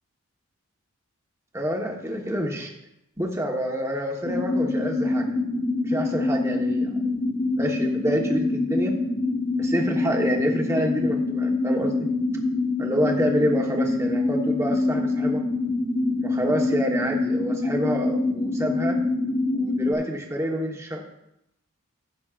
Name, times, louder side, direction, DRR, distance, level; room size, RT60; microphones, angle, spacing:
voice 1, 1.5-2.7 3.2-5.3 5.8-6.9 7.5-8.9 9.6-12.1 12.8-15.4 16.2-19.0 19.5-21.0, equal, 15° right, 1 dB, 1.1 m, -27 dB
sound 1, 4.2-19.9, left 2 dB, 70° left, 1.4 m, -25 dB
15.5 x 7.6 x 2.5 m, 0.83 s
head